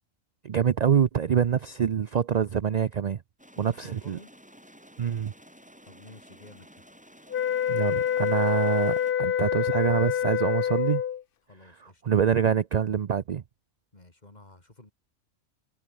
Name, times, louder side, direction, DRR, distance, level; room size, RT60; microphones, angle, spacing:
voice 1, 0.4-3.2 3.6-4.2 5.0-5.3 7.7-11.0 11.6-13.4, right 8 dB, 60° right, 0.4 m, -25 dB
sound 1, 3.4-9.1, equal, 5° right, 3.8 m, -53 dB
voice 2, 3.5-4.3 5.8-6.7 11.5-12.3 13.9-14.9, left 2 dB, 30° left, 3.3 m, -51 dB
sound 2, 7.3-11.2, left 9 dB, 50° left, 0.7 m, -26 dB
omnidirectional pair, 1.4 m